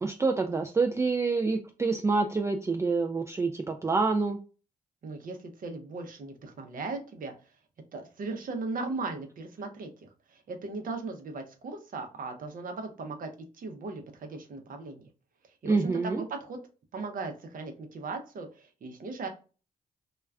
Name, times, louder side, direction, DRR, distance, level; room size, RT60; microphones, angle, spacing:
voice 1, 0.0-4.4 15.6-16.2, right 4 dB, 15° right, 4 dB, 0.3 m, -27 dB
voice 2, 5.0-7.3 7.9-13.3 13.5-15.1 15.6-16.6 16.9-19.3, right 3 dB, 60° right, 5 dB, 0.7 m, -38 dB
2.2 x 2.2 x 3.3 m, 0.35 s
supercardioid pair, 45°, 16 cm